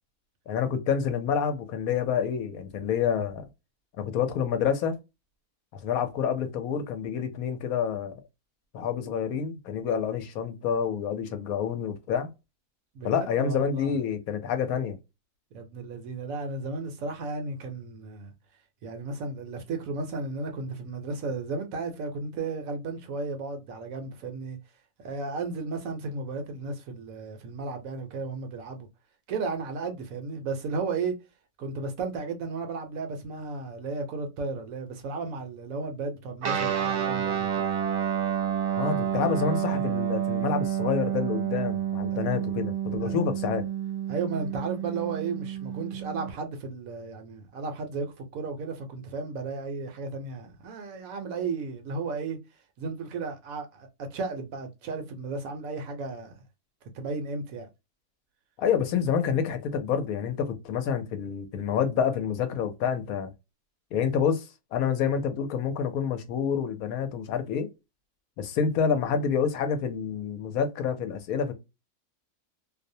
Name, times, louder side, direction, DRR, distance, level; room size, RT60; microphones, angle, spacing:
voice 1, 0.5-3.4 4.0-5.0 5.8-8.2 8.7-12.3 13.0-15.0 38.8-43.6 58.6-63.3 63.9-67.7 68.4-71.5, left 7 dB, 75° left, 1.0 m, -28 dB
voice 2, 12.9-13.9 15.5-18.3 18.8-24.6 25.0-28.9 29.3-31.2 31.6-37.6 42.1-42.2 43.0-43.2 44.1-52.4 52.8-56.3 56.9-57.7, right 4 dB, 70° right, 1.0 m, -34 dB
Guitar, 36.4-46.3, right 9 dB, 85° right, 1.1 m, -29 dB
2.6 x 2.0 x 2.6 m
omnidirectional pair, 1.6 m